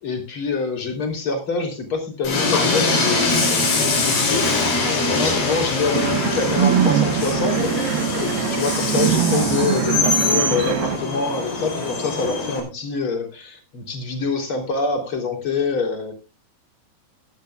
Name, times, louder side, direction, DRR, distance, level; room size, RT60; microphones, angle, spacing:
voice 1, 0.0-16.1, left 4 dB, 30° left, 4 dB, 3.7 m, -26 dB
Train, 2.2-12.6, left 3 dB, 50° left, 5.3 m, -23 dB
sound 1, 5.9-11.0, right 10 dB, 70° right, 2.5 m, -22 dB
17.5 x 13.5 x 2.4 m, 0.30 s
omnidirectional pair, 5.4 m